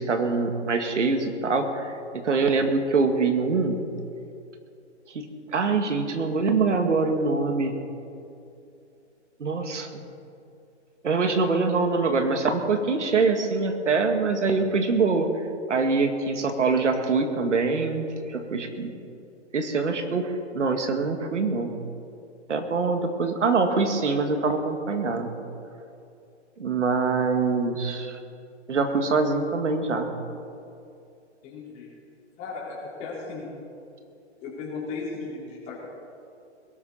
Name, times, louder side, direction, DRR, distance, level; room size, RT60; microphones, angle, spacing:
voice 1, 0.0-3.9 5.1-5.3 5.5-7.8 9.4-10.0 11.0-15.3 15.7-18.9 19.5-21.8 22.5-25.4 26.6-28.2 28.7-30.2, right 4 dB, 80° right, 6 dB, 2.1 m, -24 dB
voice 2, 31.4-31.9 32.4-33.5 34.4-35.9, left 4 dB, 20° left, -6 dB, 4.3 m, -36 dB
21.5 x 12.5 x 4.3 m, 2.6 s
hypercardioid pair, 155°, 35 cm